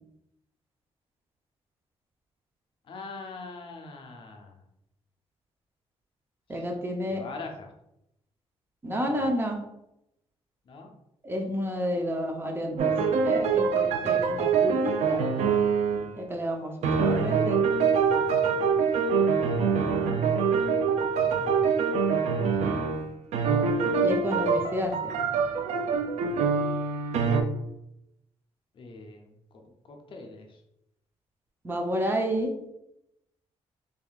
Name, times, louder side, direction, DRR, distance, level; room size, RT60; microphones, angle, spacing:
voice 1, 2.8-4.6 6.5-6.7 7.1-7.7 9.0-9.3 10.6-10.9 20.5-21.4 28.7-30.6, left 3 dB, 50° left, 2 dB, 0.6 m, -43 dB
voice 2, 6.5-7.2 8.8-9.6 11.2-12.9 13.2-15.2 16.2-16.7 17.0-17.6 24.0-24.9 31.6-32.5, equal, 20° right, 2 dB, 0.6 m, -30 dB
sound 1, 12.8-16.1 16.8-23.1 23.3-27.4, right 5 dB, 85° right, 0.5 m, -25 dB
3.5 x 3.5 x 2.3 m, 0.83 s
cardioid pair, 135°, 11 cm